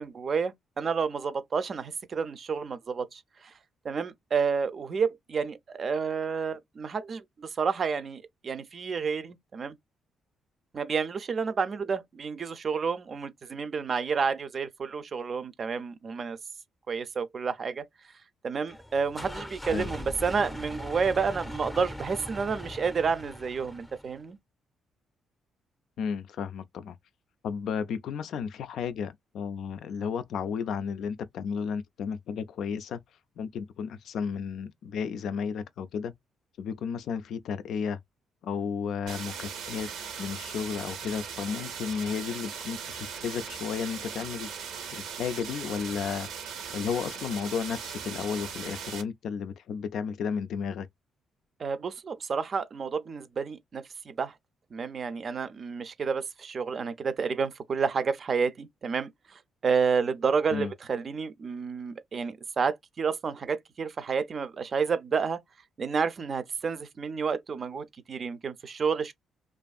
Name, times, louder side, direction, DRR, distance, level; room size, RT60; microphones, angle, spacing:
voice 1, 0.0-3.5 3.8-9.8 10.7-16.4 16.9-17.9 18.4-24.4 51.6-54.3 54.7-65.4 65.8-69.1, right 5 dB, 45° right, 0.4 m, -30 dB
sound 1, 18.7-24.2, left 1 dB, 10° left, 0.5 m, -40 dB
voice 2, 26.0-27.0 27.4-33.0 33.4-36.1 36.6-38.0 38.4-39.9 40.2-44.5 44.9-46.3 46.7-50.9 60.5-60.7, left 6 dB, 70° left, 0.3 m, -33 dB
sound 2, 39.1-49.0, right 7 dB, 85° right, 0.7 m, -39 dB
2.5 x 2.4 x 2.3 m
cardioid pair, 90°, 0 cm